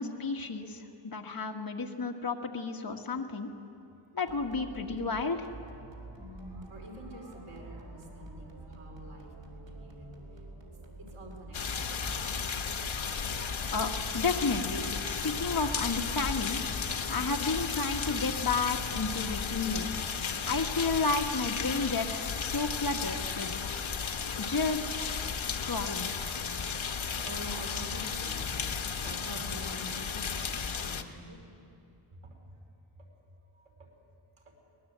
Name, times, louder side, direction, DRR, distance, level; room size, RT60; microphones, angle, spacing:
voice 1, 0.0-3.5 4.1-5.5 13.7-19.9 20.4-23.6 24.4-25.0 25.5-26.1, left 4 dB, 45° left, 3 dB, 1.7 m, -32 dB
sound 1, 4.3-19.2, right 2 dB, 60° right, 3.8 m, -47 dB
voice 2, 6.2-10.1 11.1-12.2 13.1-13.3 27.2-28.6 29.0-31.4 32.1-32.4 33.5-33.6, equal, 80° right, 0 dB, 4.7 m, -47 dB
sound 2, 11.5-31.0, left 6 dB, 65° left, 1.3 m, -34 dB
23.0 x 19.5 x 8.2 m, 2.7 s
wide cardioid pair, 95°, 50 cm